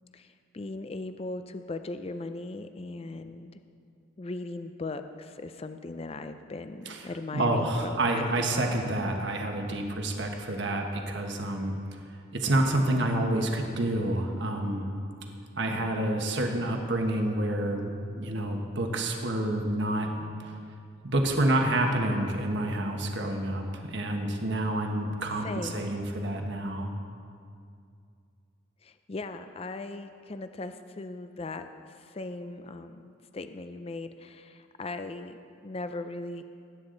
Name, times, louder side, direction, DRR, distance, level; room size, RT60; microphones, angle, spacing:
voice 1, 0.1-3.5 4.2-8.4 25.4-25.9 28.8-31.7 32.0-35.4 35.6-36.4, left 2 dB, 30° left, 9 dB, 0.4 m, -38 dB
voice 2, 6.8-11.7 12.3-14.9 15.6-20.3 21.0-26.9, right 1 dB, 60° right, 2 dB, 1.3 m, -28 dB
19.5 x 9.6 x 3.9 m, 2.4 s
head